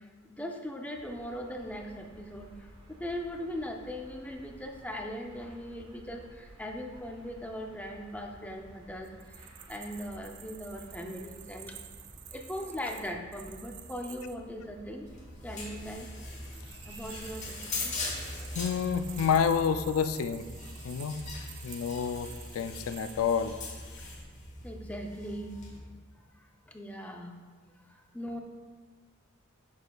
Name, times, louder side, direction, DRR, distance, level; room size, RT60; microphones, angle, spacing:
voice 1, 0.3-2.5 3.0-9.1 9.7-11.7 12.3-15.1 15.4-16.1 16.9-17.6 17.8-17.9 24.6-25.6 26.7-27.4 28.1-28.4, equal, 5° left, 2 dB, 0.4 m, -39 dB
sound 1, 0.9-20.3, equal, 25° right, 0.7 m, -54 dB
sound 2, 9.0-14.4 16.2-23.4, right 11 dB, 55° right, 0.3 m, -50 dB
sound 3, 15.1-25.8, left 2 dB, 35° left, 1.2 m, -41 dB
voice 2, 18.5-20.4 20.8-21.2 21.6-23.5, left 7 dB, 80° left, 10 dB, 0.3 m, -29 dB
7.1 x 6.4 x 2.3 m, 1.4 s
head